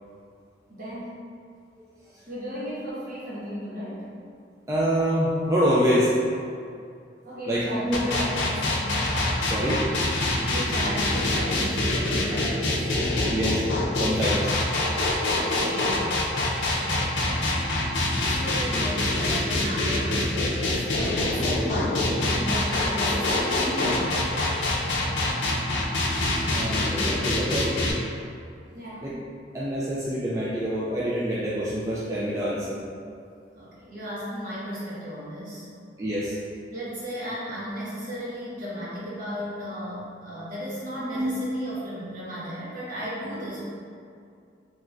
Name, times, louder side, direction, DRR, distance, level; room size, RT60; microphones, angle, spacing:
voice 1, 0.7-1.2 2.3-4.1 7.2-9.0 10.2-12.9 14.1-14.5 14.9-16.0 16.3-17.6 18.3-24.7 28.7-29.1 33.5-35.7 36.7-43.6, equal, 50° right, -9 dB, 1.0 m, -35 dB
voice 2, 4.7-6.1 7.5-8.1 9.4-9.8 13.3-13.7 13.9-14.4 21.8-21.9 26.5-27.8 29.0-29.1 29.5-32.8 36.0-36.4 41.1-41.3, equal, 15° right, -7 dB, 0.3 m, -26 dB
sound 1, 7.9-27.9, left 2 dB, 80° left, 0.5 m, -25 dB
3.0 x 2.5 x 3.3 m, 2.3 s
head